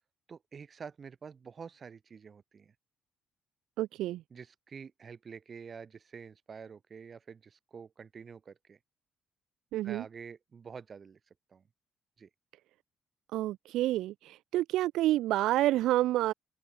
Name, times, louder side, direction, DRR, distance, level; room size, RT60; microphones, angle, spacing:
voice 1, 0.3-2.7 4.3-8.8 9.8-11.2 11.5-11.6 12.2-12.3, right 6 dB, 45° right, 5.1 m, -48 dB
voice 2, 3.8-4.2 9.7-10.0 13.3-16.3, right 15 dB, 90° right, 0.4 m, -28 dB
open air
cardioid pair, 90°, 0 cm